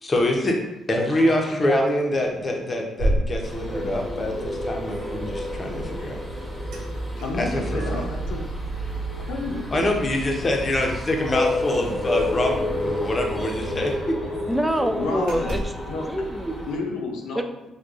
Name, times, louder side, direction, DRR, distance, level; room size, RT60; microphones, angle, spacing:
voice 1, 0.0-0.5 0.9-6.2 7.4-8.0 9.7-14.1, left 1 dB, 30° left, 1 dB, 0.6 m, -25 dB
sound 1, 1.0-1.7 2.2-2.4 3.0-4.1 6.7-6.9 7.2-8.2 8.7-10.5 10.8-10.9 11.2-11.4 12.5-12.6 12.9-13.0 13.4-14.3 14.7-14.9 15.3-15.9, right 1 dB, 90° right, 0.6 m, -32 dB
sound 2, 3.4-16.8, equal, 10° left, 1.0 m, -30 dB
voice 2, 7.2-8.4 9.2-10.0 15.0-15.6 15.9-16.0 16.7-17.4, left 3 dB, 90° left, 1 dB, 0.6 m, -31 dB
voice 3, 14.3-15.6 16.0-16.6 17.4-17.7, equal, 5° right, 6 dB, 0.3 m, -26 dB
4.6 x 2.2 x 2.5 m, 0.95 s
cardioid pair, 90°, 0 cm